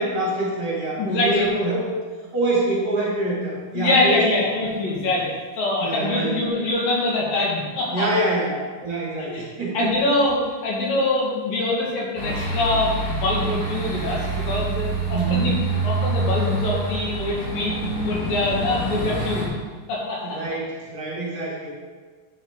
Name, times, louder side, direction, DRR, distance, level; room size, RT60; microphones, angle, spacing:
voice 1, 0.0-2.0 2.3-4.3 5.8-6.4 7.9-8.5 8.8-9.9 15.1-15.6 20.2-21.8, right 2 dB, 40° right, -6 dB, 3.1 m, -25 dB
voice 2, 1.0-1.5 3.7-5.3 5.6-8.1 9.3-9.4 9.7-15.6 15.8-19.5 19.9-20.4, left 2 dB, 65° left, -3 dB, 3.6 m, -24 dB
sound 1, 12.2-19.4, right 3 dB, 40° left, 3.8 m, -26 dB
11.0 x 10.5 x 3.8 m, 1.4 s
omnidirectional pair, 4.5 m